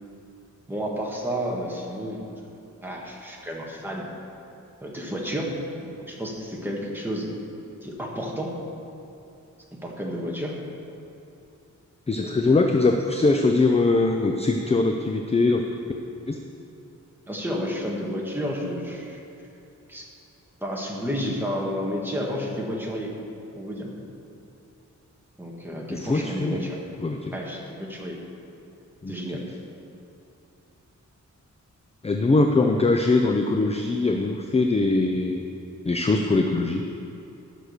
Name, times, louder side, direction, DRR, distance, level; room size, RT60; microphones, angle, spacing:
voice 1, 0.7-2.3 2.8-4.1 4.8-5.6 6.1-7.3 7.8-8.5 9.8-10.6 12.2-12.4 17.3-19.2 19.9-20.1 20.6-23.1 23.5-23.9 25.4-26.8 27.3-28.2 29.1-29.4, equal, 5° right, -2 dB, 1.7 m, -31 dB
voice 2, 12.1-15.6 16.3-16.4 25.9-26.6 27.0-27.3 29.0-29.1 32.0-35.4 35.8-36.8, left 3 dB, 20° left, 4 dB, 0.5 m, -22 dB
12.5 x 6.3 x 6.6 m, 2.9 s
wide cardioid pair, 150°, 30 cm